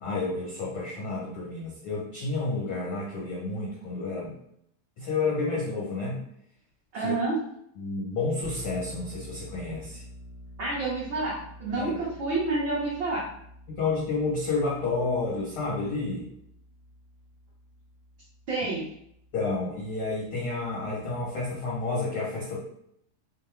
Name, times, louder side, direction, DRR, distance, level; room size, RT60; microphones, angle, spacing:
voice 1, 0.0-4.3 5.0-6.2 7.0-7.1 7.8-10.0 11.8-12.0 13.7-16.3 19.3-22.6, left 3 dB, 80° left, -4 dB, 1.2 m, -30 dB
voice 2, 6.9-7.4 10.6-13.3 18.5-18.9, right 3 dB, 75° right, -7 dB, 1.1 m, -29 dB
sound 1, 8.4-21.8, equal, 50° right, 0.7 m, -48 dB
5.3 x 2.1 x 4.4 m, 0.71 s
omnidirectional pair, 3.7 m